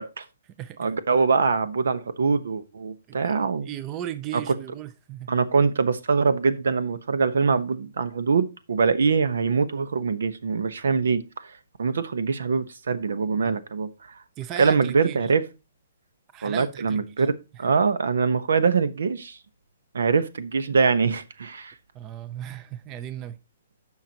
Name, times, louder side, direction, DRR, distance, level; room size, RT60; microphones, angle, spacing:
voice 1, 0.8-3.7 5.3-11.5 11.8-13.9 14.6-15.4 16.4-17.3 17.6-19.4 19.9-21.7, right 5 dB, 80° right, 1.0 m, -23 dB
voice 2, 3.1-5.3 13.4-13.6 14.4-15.3 16.3-17.3 21.9-23.4, right 11 dB, 20° right, 0.5 m, -36 dB
17.0 x 5.8 x 2.9 m
hypercardioid pair, 160°, 0 cm